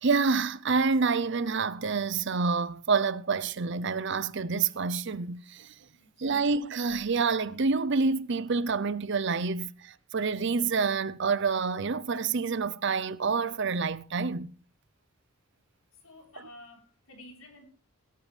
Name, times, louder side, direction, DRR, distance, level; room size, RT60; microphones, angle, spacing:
voice 1, 0.0-5.7 6.2-14.5, right 4 dB, 50° right, 0.6 m, -28 dB
voice 2, 15.9-17.7, left 1 dB, 70° left, 3.9 m, -51 dB
18.0 x 12.5 x 3.3 m
head